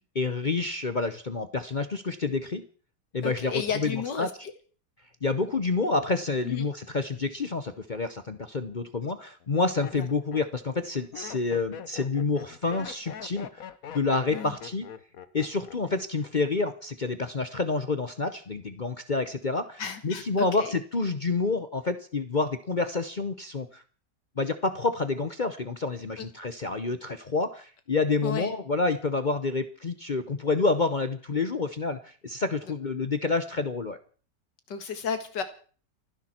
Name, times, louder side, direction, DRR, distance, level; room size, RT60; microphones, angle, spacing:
voice 1, 0.1-2.6 3.1-4.3 5.2-13.7 13.9-14.9 15.3-23.8 24.4-34.0, left 3 dB, 40° left, 10 dB, 0.7 m, -28 dB
voice 2, 3.2-4.5 6.4-6.7 10.0-10.1 14.3-14.6 19.8-20.7 26.2-26.3 28.2-28.6 34.7-35.4, left 7 dB, 85° left, 9 dB, 2.4 m, -33 dB
Laughter, 8.3-8.8 9.4-16.0 16.3-16.8, left 8 dB, 60° left, 1.4 m, -43 dB
30.0 x 10.5 x 4.4 m, 0.42 s
omnidirectional pair, 1.8 m